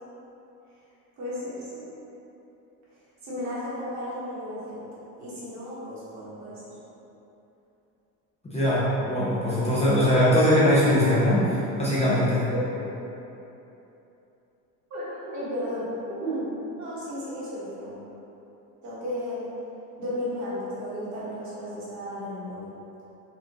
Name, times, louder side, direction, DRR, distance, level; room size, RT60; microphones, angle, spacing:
voice 1, 1.2-1.9 3.2-4.8 5.2-6.6 12.5-12.6 14.9-15.9 16.2-16.5 16.8-18.0 18.8-19.5 20.0-22.7, equal, 50° right, -9 dB, 1.3 m, -34 dB
voice 2, 8.4-12.4, left 1 dB, 20° left, -10 dB, 0.7 m, -21 dB
4.3 x 2.5 x 2.9 m, 3.0 s
cardioid pair, 135°, 35 cm